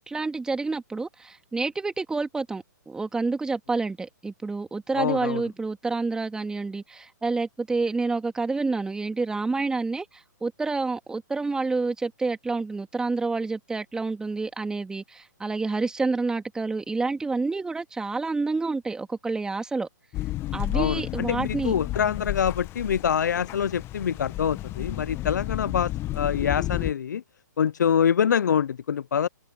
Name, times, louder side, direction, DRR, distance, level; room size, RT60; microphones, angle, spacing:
voice 1, 0.0-19.9 20.5-21.7, right 3 dB, 5° right, 2.6 m, -28 dB
voice 2, 4.9-5.4 20.7-27.2 27.6-29.3, left 8 dB, 65° left, 0.9 m, -25 dB
sound 1, 20.1-26.9, left 16 dB, 25° left, 1.5 m, -32 dB
figure-of-eight pair, 125°, 10 cm